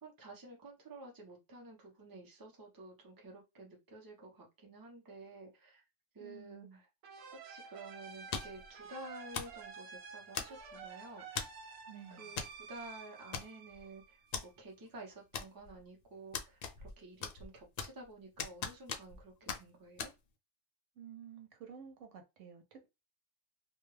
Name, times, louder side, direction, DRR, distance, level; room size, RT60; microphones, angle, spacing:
voice 1, 0.0-5.8 6.1-6.9 7.4-11.3 12.1-20.1, right 2 dB, 20° right, 0.7 m, -51 dB
voice 2, 6.2-6.8 11.9-12.3 21.0-22.9, right 8 dB, 85° right, 1.0 m, -52 dB
sound 1, 7.0-14.5, right 6 dB, 65° right, 0.8 m, -51 dB
sound 2, 8.3-8.7 9.3-9.6 10.3-10.8 11.4-11.6 12.4-12.6 12.8-12.9 13.3-13.8 14.3-14.5 15.3-15.8 16.3-16.9 17.2-18.0 18.4-19.2 19.5-19.6 20.0-20.1, left 5 dB, 70° left, 0.4 m, -40 dB
2.3 x 2.2 x 3.1 m
omnidirectional pair, 1.2 m